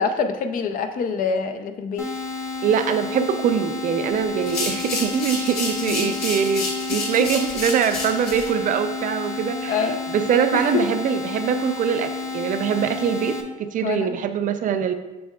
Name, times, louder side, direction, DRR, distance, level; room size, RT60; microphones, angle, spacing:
voice 1, 0.0-2.1 5.8-6.2 6.9-7.1 9.7-10.1 10.5-10.9 13.8-14.2, left 5 dB, 55° left, 7 dB, 0.6 m, -26 dB
sound 1, 2.0-13.4, left 3 dB, 15° left, 0.9 m, -31 dB
voice 2, 2.6-9.8 10.1-14.9, right 7 dB, 50° right, 9 dB, 0.5 m, -23 dB
sound 2, 4.4-8.5, left 3 dB, 70° left, 1.6 m, -30 dB
7.5 x 5.5 x 2.3 m, 1.1 s
cardioid pair, 110°, 17 cm